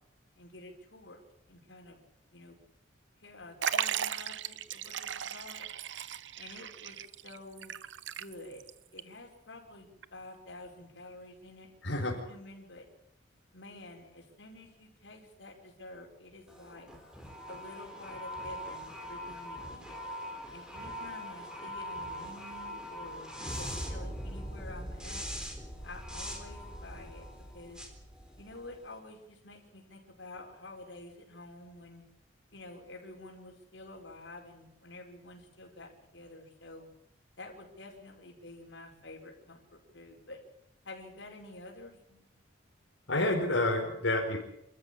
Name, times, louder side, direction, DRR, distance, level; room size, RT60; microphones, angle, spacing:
voice 1, 0.4-1.2 1.5-2.6 3.2-5.7 6.4-7.7 8.1-8.6 8.9-12.0 12.3-12.8 13.5-16.9 17.5-20.0 20.5-23.3 23.6-25.3 25.8-27.3 27.5-27.8 28.4-32.0 32.5-36.9 37.4-40.4 40.8-42.0, left 2 dB, 70° left, 1 dB, 5.4 m, -49 dB
Liquid, 3.6-8.7 9.0-9.1 10.0-10.1, right 9 dB, 70° right, 0.8 m, -36 dB
voice 2, 11.8-12.2 43.1-44.4, left 2 dB, 85° left, -1 dB, 4.7 m, -29 dB
sound 1, 16.5-28.9, equal, 5° right, 3.9 m, -42 dB
27.5 x 13.5 x 8.9 m, 0.81 s
head